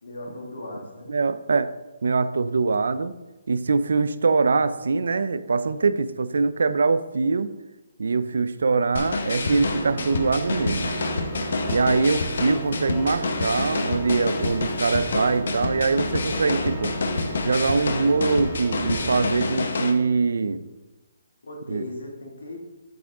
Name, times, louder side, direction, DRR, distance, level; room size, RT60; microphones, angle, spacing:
voice 1, 0.0-1.1 17.3-17.4 21.4-22.6, left 2 dB, 90° left, 0 dB, 2.0 m, -38 dB
voice 2, 1.1-1.7 2.0-3.1 3.5-7.5 8.0-10.9 11.7-16.9 17.5-20.6 21.7-21.8, right 4 dB, 75° right, 14 dB, 0.5 m, -23 dB
sound 1, 9.0-19.9, left 4 dB, 60° left, 0.9 m, -28 dB
Organ, 9.2-20.2, right 3 dB, 25° right, 1.8 m, -34 dB
Speech, 11.2-15.4 16.1-17.0, left 1 dB, 5° left, 0.7 m, -49 dB
8.4 x 6.1 x 3.7 m, 1.1 s
hypercardioid pair, 170°, 0 cm